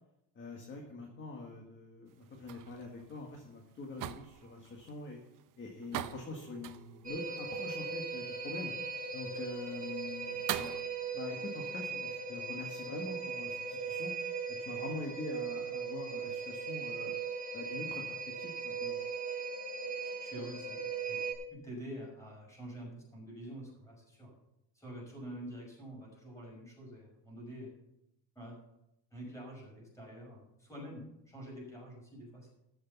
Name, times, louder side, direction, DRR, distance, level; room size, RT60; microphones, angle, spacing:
voice 1, 0.3-5.2 5.6-8.7 9.1-10.7 11.1-14.1 14.5-17.1 17.5-19.0, left 3 dB, 25° left, 1 dB, 1.6 m, -44 dB
sound 1, 2.1-10.8, right 12 dB, 45° right, 0.6 m, -45 dB
sound 2, 7.0-21.3, right 5 dB, 20° right, 3.7 m, -39 dB
voice 2, 20.0-21.2 21.5-24.3 24.7-27.7 28.4-28.6 29.1-32.5, equal, 5° left, -2 dB, 5.7 m, -47 dB
14.5 x 6.6 x 7.0 m, 0.85 s
cardioid pair, 160°, 44 cm